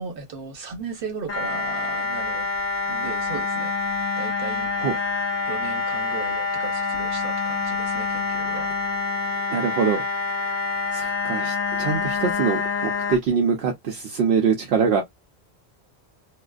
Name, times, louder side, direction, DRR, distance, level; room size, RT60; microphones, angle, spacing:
voice 1, 0.0-2.5 2.9-3.7 4.2-4.7 5.4-8.7, right 5 dB, 60° right, 1.0 m, -36 dB
sound 1, 1.3-13.2, left 4 dB, 50° left, 1.0 m, -26 dB
voice 2, 9.5-10.0 10.9-15.0, right 6 dB, 75° right, 0.8 m, -23 dB
2.4 x 2.4 x 2.2 m
omnidirectional pair, 1.1 m